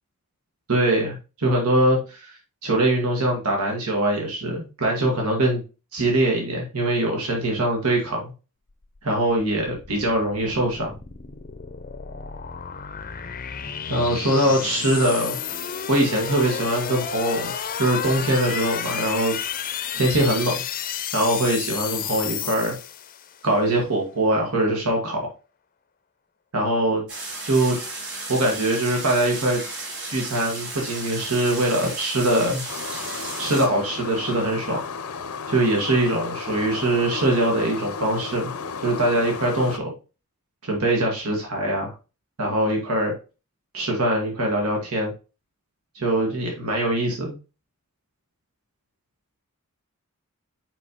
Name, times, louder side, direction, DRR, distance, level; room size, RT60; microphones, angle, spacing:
voice 1, 0.7-2.3 2.6-5.6 5.9-8.3 9.0-10.9 13.9-15.4 15.9-19.4 19.9-20.6 21.1-22.8 23.4-25.3 26.5-27.0 27.4-27.8 28.3-29.6 30.1-32.6 33.4-34.8 35.5-38.5 38.8-39.9 40.6-41.9 42.4-43.1 43.7-45.1 45.9-47.3, right 1 dB, 85° right, 0 dB, 1.6 m, -22 dB
sound 1, 8.8-23.4, left 8 dB, 40° left, 0.5 m, -32 dB
sound 2, 27.1-33.6, right 2 dB, 55° right, 3.7 m, -34 dB
sound 3, 32.7-39.8, left 5 dB, 80° left, 0.6 m, -34 dB
6.2 x 5.3 x 2.9 m, 0.31 s
head